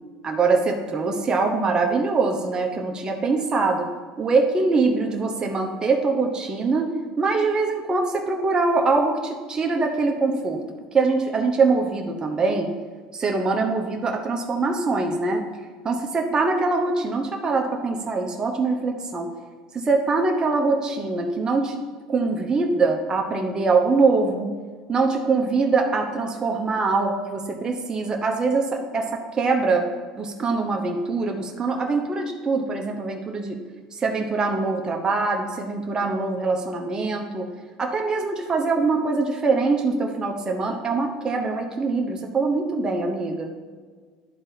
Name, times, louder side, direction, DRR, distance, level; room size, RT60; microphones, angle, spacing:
voice 1, 0.2-3.9 4.2-6.9 7.2-10.6 10.9-12.7 13.1-15.4 15.8-19.3 19.7-21.8 22.1-24.5 24.9-29.9 30.1-33.6 33.9-37.5 37.8-43.5, right 3 dB, 25° right, 2 dB, 0.9 m, -23 dB
11.0 x 3.9 x 4.0 m, 1.5 s
supercardioid pair, 100°, 3 cm